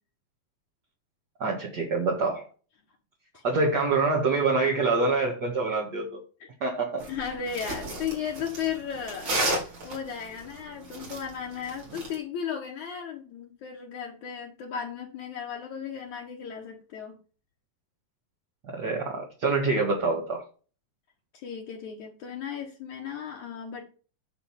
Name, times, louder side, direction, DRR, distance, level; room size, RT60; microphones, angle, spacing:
voice 1, 1.4-2.5 3.4-6.1 6.6-7.0 18.6-20.4, right 3 dB, 35° right, -2 dB, 1.9 m, -26 dB
sound 1, 7.0-12.2, right 2 dB, 50° right, 5.2 m, -33 dB
voice 2, 7.1-17.2 21.4-23.8, left 7 dB, 65° left, -1 dB, 2.5 m, -35 dB
10.0 x 4.3 x 7.2 m, 0.37 s
omnidirectional pair, 4.0 m